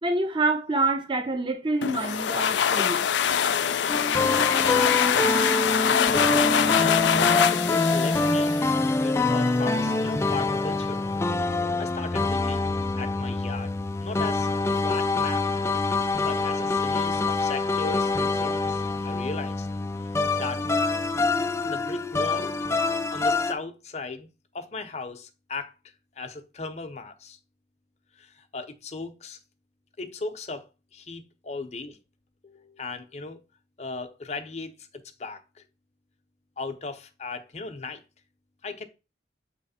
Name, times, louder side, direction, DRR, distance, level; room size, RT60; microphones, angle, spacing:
voice 1, 0.0-3.1, right 2 dB, 30° right, 0.7 m, -26 dB
sound 1, 1.8-9.3, left 8 dB, 85° left, 0.4 m, -24 dB
sound 2, 3.9-23.5, left 3 dB, 15° left, 0.4 m, -25 dB
voice 2, 4.5-5.3 5.9-8.5 9.0-11.1 11.8-12.7 13.0-13.7 14.0-15.4 16.2-19.7 20.4-20.6 21.7-22.5 23.1-24.3 24.5-25.7 26.2-27.4 28.2-29.4 30.0-30.6 30.9-32.0 32.4-33.4 33.8-35.6 36.6-38.0 38.6-38.9, left 3 dB, 40° left, 0.7 m, -37 dB
7.6 x 3.1 x 4.2 m
head